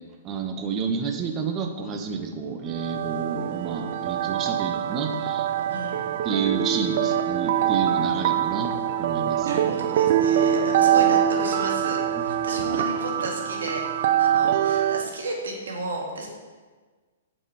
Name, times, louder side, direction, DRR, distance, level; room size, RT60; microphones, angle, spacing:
voice 1, 0.2-5.5 6.2-9.6, right 5 dB, 30° right, 5 dB, 0.9 m, -30 dB
sound 1, 2.7-15.1, right 10 dB, 55° right, 0.4 m, -24 dB
voice 2, 5.7-6.1 9.4-13.8 14.2-16.3, right 2 dB, 80° right, 0 dB, 1.9 m, -33 dB
6.9 x 6.0 x 4.8 m, 1.4 s
hypercardioid pair, 125°, 0 cm